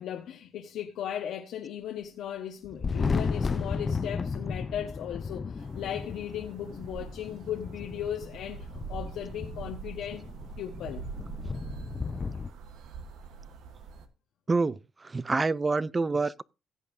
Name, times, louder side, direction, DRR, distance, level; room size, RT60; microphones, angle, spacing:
voice 1, 0.0-10.2 10.6-11.0, left 10 dB, 80° left, 1.1 m, -37 dB
Thunder, 2.6-12.5, left 5 dB, 35° left, 0.6 m, -34 dB
sound 1, 5.6-14.1, right 5 dB, 80° right, 1.2 m, -44 dB
voice 2, 14.5-16.4, right 3 dB, 25° right, 0.4 m, -27 dB
16.5 x 8.3 x 2.7 m
cardioid pair, 90°, 0 cm